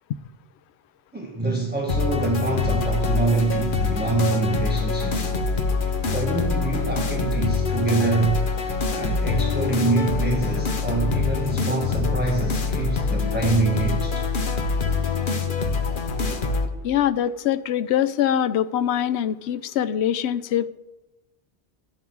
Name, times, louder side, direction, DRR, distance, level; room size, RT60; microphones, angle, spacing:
voice 1, 1.1-5.4 6.1-8.6 8.9-14.3, right 3 dB, 10° right, 0 dB, 1.3 m, -25 dB
sound 1, 1.9-16.7, left 4 dB, 55° left, 1.1 m, -25 dB
voice 2, 16.8-20.7, left 10 dB, 85° left, 14 dB, 0.9 m, -23 dB
13.5 x 10.5 x 4.6 m, 1.0 s
omnidirectional pair, 1.1 m